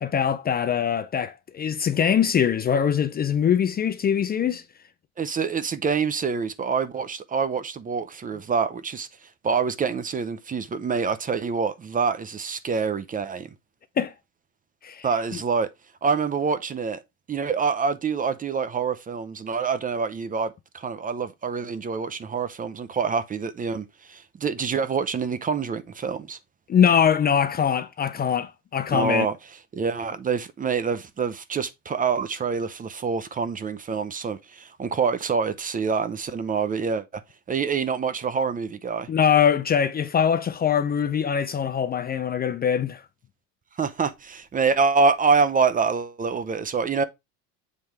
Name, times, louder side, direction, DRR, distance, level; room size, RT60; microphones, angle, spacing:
voice 1, 0.0-4.6 14.0-14.1 14.8-15.4 26.7-29.3 39.1-43.0, left 8 dB, 25° left, 0.5 m, -23 dB
voice 2, 5.2-9.1 9.4-13.5 15.0-15.7 16.0-17.0 17.3-26.4 28.9-29.3 29.7-37.0 37.5-39.1 43.8-47.0, right 5 dB, 25° right, 0.6 m, -26 dB
7.5 x 3.3 x 4.6 m
supercardioid pair, 115°, 36 cm